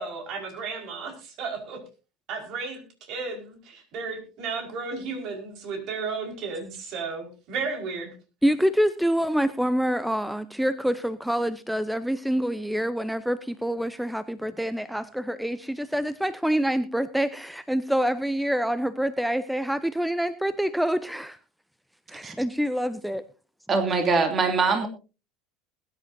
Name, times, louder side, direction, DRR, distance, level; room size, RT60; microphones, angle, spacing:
voice 1, 0.0-1.8 2.3-8.1, right 4 dB, 50° right, 4 dB, 5.1 m, -34 dB
voice 2, 8.4-21.4 22.1-23.2, equal, ahead, 15 dB, 0.7 m, -26 dB
voice 3, 23.7-24.9, right 4 dB, 30° right, 5 dB, 2.8 m, -22 dB
21.0 x 11.0 x 2.7 m, 0.32 s
hypercardioid pair, 75°, 0 cm